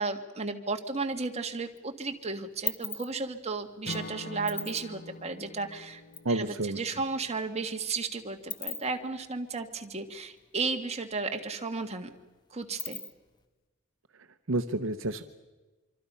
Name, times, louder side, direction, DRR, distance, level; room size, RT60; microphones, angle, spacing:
voice 1, 0.0-6.0 6.3-12.1 12.5-13.0, right 4 dB, 30° right, 5 dB, 1.8 m, -34 dB
sound 1, 1.0-1.8 2.1-6.3 6.6-6.7 6.9-10.8 11.1-11.2 11.5-13.4, left 6 dB, 20° left, 1.5 m, -40 dB
Acoustic guitar / Strum, 3.8-7.9, left 2 dB, 45° left, 0.8 m, -44 dB
voice 2, 6.2-6.8 14.5-15.2, right 2 dB, 65° right, 10 dB, 0.9 m, -29 dB
25.5 x 25.0 x 5.6 m, 1.2 s
head